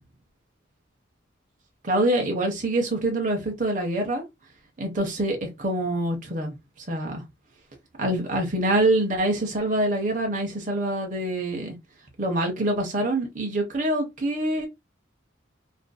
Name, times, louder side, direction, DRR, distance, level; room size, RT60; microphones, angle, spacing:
voice 1, 1.8-4.2 4.8-6.5 6.9-7.2 8.0-11.8 12.2-14.7, right 1 dB, 45° right, 0.7 m, -25 dB
2.5 x 2.4 x 2.2 m
head